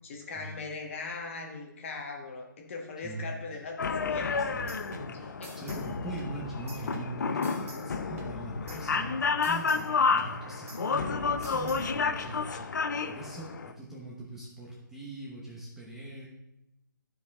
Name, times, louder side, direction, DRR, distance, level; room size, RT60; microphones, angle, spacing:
voice 1, 0.0-4.3 5.1-5.5, left 4 dB, 35° left, 1 dB, 1.4 m, -40 dB
sound 1, 3.8-13.7, left 5 dB, 60° left, 0.6 m, -30 dB
sound 2, 4.2-5.9 6.2-7.9 8.2-9.9 10.2-11.9, right 3 dB, 40° right, 1.5 m, -48 dB
voice 2, 4.4-4.8 5.1-12.7 13.0-16.3, right 2 dB, 5° right, -6 dB, 1.0 m, -42 dB
12.5 x 5.0 x 3.6 m, 0.89 s
hypercardioid pair, 160°, 11 cm